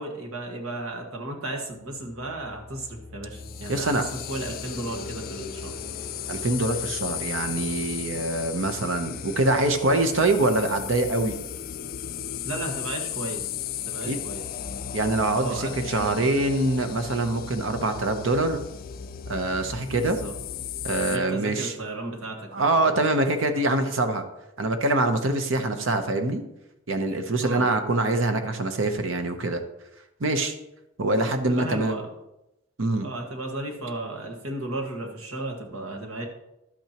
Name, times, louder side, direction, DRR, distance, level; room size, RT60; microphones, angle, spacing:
voice 1, 0.0-3.9 4.3-5.7 12.4-13.6 13.9-14.4 15.3-16.6 20.0-20.3 21.0-23.0 27.4-27.7 31.4-32.1 33.0-36.2, right 2 dB, 80° right, 2 dB, 1.7 m, -34 dB
sound 1, 1.6-12.4, left 2 dB, 15° right, 0.7 m, -45 dB
sound 2, 3.3-21.2, left 9 dB, 45° left, 0.3 m, -36 dB
voice 2, 3.7-4.1 6.3-11.3 14.1-14.2 14.9-18.6 19.3-20.2 20.8-21.7 22.5-24.2 24.6-26.4 26.9-29.6 30.2-30.6 31.0-32.0 32.8-33.1, right 2 dB, 65° right, 7 dB, 0.9 m, -24 dB
11.5 x 8.7 x 3.0 m, 0.90 s
head